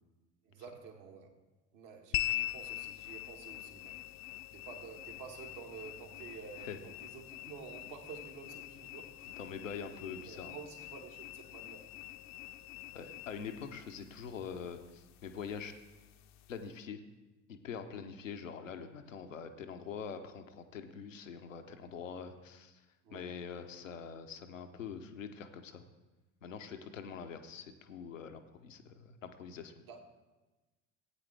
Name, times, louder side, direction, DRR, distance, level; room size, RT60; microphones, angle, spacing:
voice 1, 0.4-1.4 1.7-9.5 10.0-11.9 23.0-23.3 29.9-30.0, right 6 dB, 60° right, 2 dB, 1.7 m, -50 dB
sound 1, 2.1-16.7, left 16 dB, 45° left, 0.5 m, -44 dB
voice 2, 9.4-10.5 12.9-15.7 16.5-17.0 17.5-22.8 23.1-25.8 26.4-29.7, left 6 dB, 90° left, 7 dB, 0.8 m, -44 dB
16.0 x 8.8 x 3.4 m, 1.1 s
hypercardioid pair, 60°, 38 cm